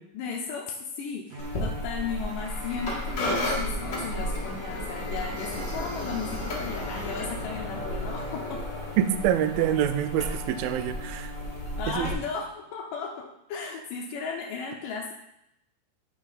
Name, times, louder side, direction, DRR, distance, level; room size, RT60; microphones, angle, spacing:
voice 1, 0.1-8.6 11.8-15.1, left 5 dB, 75° left, 0 dB, 2.1 m, -35 dB
Bowed string instrument, 1.3-12.5, left 1 dB, 65° right, 2.4 m, -42 dB
sound 1, 1.4-12.1, left 1 dB, 40° left, 1.8 m, -33 dB
voice 2, 9.0-11.3 11.9-12.1, right 10 dB, 85° right, 9 dB, 2.4 m, -26 dB
9.8 x 5.5 x 4.1 m, 0.81 s
omnidirectional pair, 4.4 m